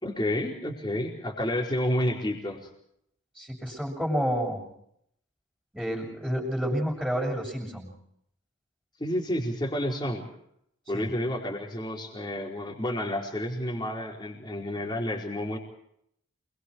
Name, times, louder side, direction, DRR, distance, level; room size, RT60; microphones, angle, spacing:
voice 1, 0.0-2.7 9.0-10.3 10.9-15.6, left 1 dB, 20° left, -1 dB, 4.6 m, -30 dB
voice 2, 3.4-4.6 5.7-7.9 10.9-11.1, equal, ahead, -5 dB, 6.6 m, -29 dB
28.5 x 22.0 x 4.8 m, 0.73 s
head